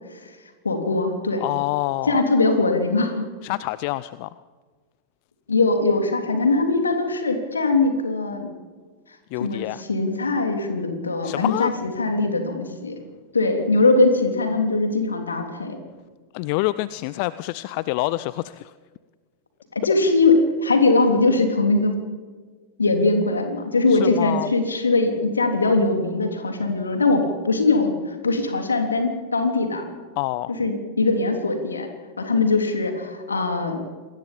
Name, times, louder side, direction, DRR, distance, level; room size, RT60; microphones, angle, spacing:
voice 1, 0.6-1.4 2.1-3.3 5.5-8.5 9.4-12.9 13.3-15.8 19.8-21.9 22.8-27.9 28.2-29.8 30.6-31.9 32.2-33.8, left 3 dB, 75° left, 5 dB, 3.3 m, -21 dB
voice 2, 1.4-2.3 3.4-4.3 9.3-9.8 11.2-11.8 16.3-18.7 23.9-24.5 30.2-30.5, left 18 dB, 45° left, 17 dB, 0.5 m, -27 dB
27.0 x 20.5 x 5.4 m, 1.4 s
figure-of-eight pair, 90°, 0 cm